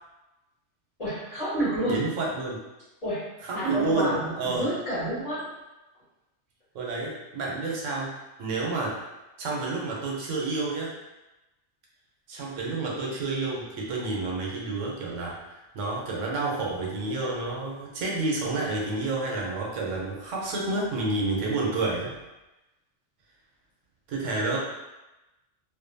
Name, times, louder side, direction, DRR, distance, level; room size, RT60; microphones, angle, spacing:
voice 1, 1.0-2.1 3.0-3.3 3.5-5.5, equal, 35° left, -14 dB, 1.2 m, -29 dB
voice 2, 1.8-2.6 3.4-4.7 6.7-9.0 9.4-11.0 12.3-22.2 24.1-24.6, right 3 dB, 90° right, -3 dB, 1.0 m, -29 dB
2.5 x 2.1 x 2.6 m, 1.0 s
omnidirectional pair, 1.3 m